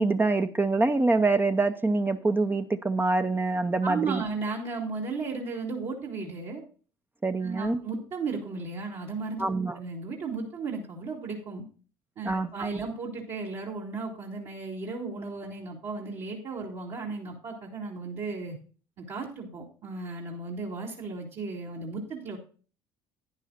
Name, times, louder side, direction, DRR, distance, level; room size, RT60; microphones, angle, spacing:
voice 1, 0.0-4.2 7.2-7.8 9.4-9.8 12.2-12.7, right 3 dB, 15° right, 0.6 m, -25 dB
voice 2, 3.8-6.6 7.4-11.6 12.2-18.6 19.0-22.4, right 4 dB, 55° right, 2.4 m, -35 dB
11.5 x 10.0 x 2.5 m
hypercardioid pair, 60°, 13 cm